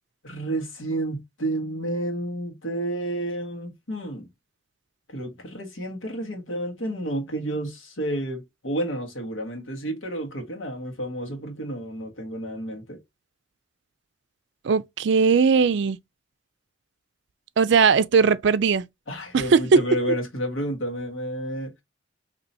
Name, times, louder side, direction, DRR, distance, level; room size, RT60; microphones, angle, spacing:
voice 1, 0.2-4.3 5.1-13.0 19.1-21.7, right 1 dB, 85° left, 1.5 m, -30 dB
voice 2, 14.6-16.0 17.6-18.8 19.3-19.8, right 5 dB, 65° right, 0.4 m, -19 dB
4.2 x 3.0 x 2.6 m
head